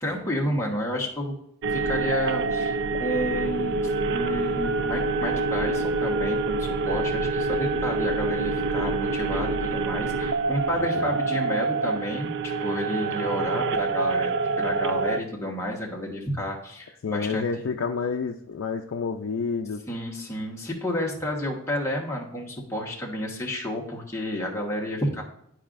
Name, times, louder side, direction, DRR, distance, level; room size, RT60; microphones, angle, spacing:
voice 1, 0.0-1.3 1.7-3.8 4.1-14.3 14.6-17.7 19.9-25.2, left 1 dB, 15° left, -2 dB, 1.3 m, -31 dB
sound 1, 1.6-15.2, right 3 dB, 60° right, 0.4 m, -26 dB
voice 2, 10.8-11.2 17.0-19.8, left 5 dB, 70° left, 2 dB, 0.4 m, -29 dB
10.5 x 4.9 x 2.5 m, 0.74 s
head